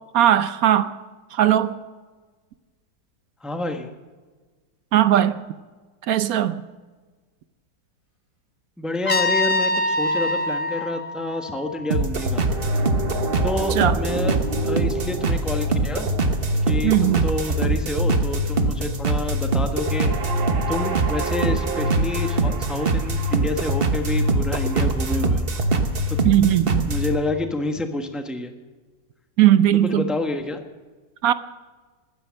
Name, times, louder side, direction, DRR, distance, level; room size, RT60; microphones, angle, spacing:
voice 1, 0.1-1.0 1.3-1.8 4.9-5.4 6.1-6.7 13.8-14.0 16.8-17.3 26.2-26.9 29.4-30.0 31.2-31.3, right 12 dB, 65° right, 1.0 m, -18 dB
voice 2, 3.4-3.9 8.8-12.4 13.4-14.4 14.6-16.1 16.7-20.1 20.7-25.5 26.1-26.2 26.9-28.5 29.8-30.6, left 2 dB, ahead, 1.0 m, -28 dB
Trumpet, 9.1-12.0, left 2 dB, 25° left, 0.8 m, -24 dB
sound 1, 11.9-27.1, right 2 dB, 35° right, 1.2 m, -23 dB
15.5 x 12.0 x 6.4 m
omnidirectional pair, 1.9 m